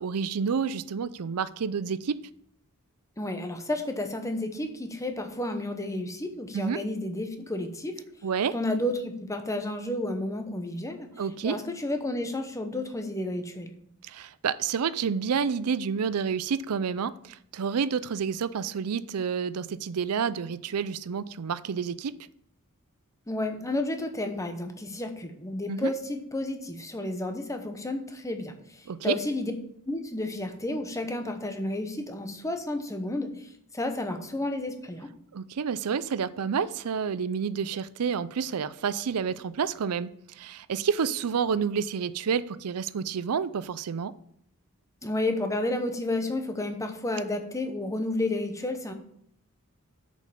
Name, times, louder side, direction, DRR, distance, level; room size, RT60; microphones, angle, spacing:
voice 1, 0.0-2.2 6.5-6.8 8.2-8.5 11.2-11.6 14.0-22.1 25.7-25.9 28.9-29.2 35.3-44.1, right 6 dB, 75° right, 16 dB, 0.5 m, -29 dB
voice 2, 3.2-8.0 8.5-11.1 11.4-13.7 23.3-29.5 29.8-33.3 33.7-35.1 45.0-48.9, left 1 dB, 15° left, 6 dB, 0.9 m, -31 dB
6.6 x 5.3 x 6.9 m, 0.70 s
head